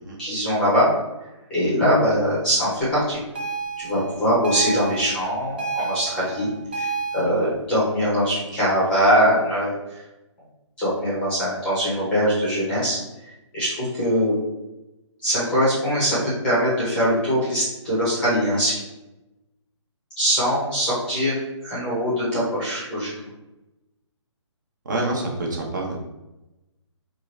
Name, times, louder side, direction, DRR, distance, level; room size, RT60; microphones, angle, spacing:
voice 1, 0.2-0.9 1.5-3.2 3.8-6.9 7.1-9.7 10.8-13.0 13.5-14.4 15.2-18.8 20.2-21.4 21.6-23.1, equal, 5° left, -9 dB, 0.7 m, -22 dB
sound 1, 3.3-7.2, right 4 dB, 20° right, 0.4 m, -30 dB
voice 2, 24.8-26.1, right 2 dB, 40° right, -1 dB, 0.9 m, -28 dB
4.5 x 2.4 x 3.1 m, 0.97 s
hypercardioid pair, 175°, 16 cm